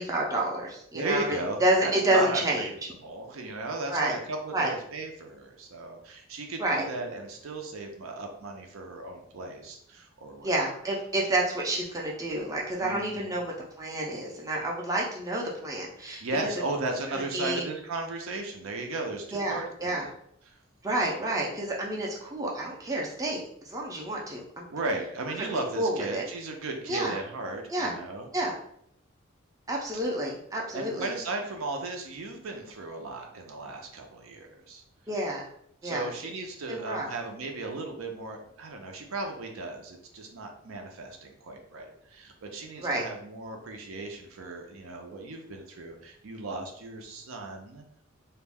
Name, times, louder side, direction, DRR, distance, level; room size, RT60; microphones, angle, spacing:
voice 1, 0.0-2.7 3.9-4.2 4.5-4.7 6.6-6.8 10.4-16.2 17.3-17.6 19.3-20.0 20.8-23.4 23.6-24.6 25.8-26.2 26.9-27.2 27.7-27.9 28.3-28.5 29.7-31.1 35.1-35.4 35.8-36.1 36.7-37.1 42.8-43.0, right 1 dB, 15° right, -3 dB, 0.4 m, -29 dB
voice 2, 0.9-10.5 12.8-13.4 16.2-20.1 20.5-20.6 24.7-28.3 30.7-34.8 35.8-47.8, right 2 dB, 75° right, 3 dB, 0.5 m, -36 dB
2.4 x 2.1 x 3.4 m, 0.69 s
head